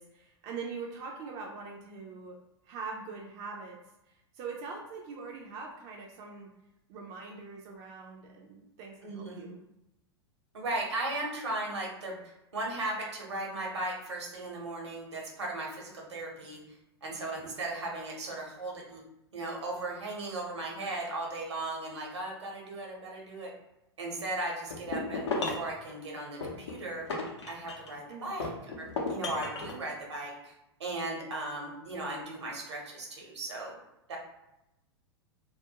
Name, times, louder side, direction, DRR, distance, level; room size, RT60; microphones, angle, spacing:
voice 1, 0.0-6.5 6.9-9.6 28.1-28.3, right 4 dB, 40° right, 0 dB, 0.4 m, -43 dB
voice 2, 9.0-9.5 10.5-12.2 12.5-16.6 17.0-19.0 19.3-23.5 24.0-27.1 27.4-28.5 28.8-30.5 30.8-33.8 34.1-34.2, right 2 dB, 75° right, -1 dB, 0.9 m, -37 dB
sound 1, 24.7-25.7 26.4-28.0 28.4-29.8, left 3 dB, 75° left, 0.6 m, -34 dB
2.4 x 2.1 x 2.8 m, 0.90 s
figure-of-eight pair, 95°, 14 cm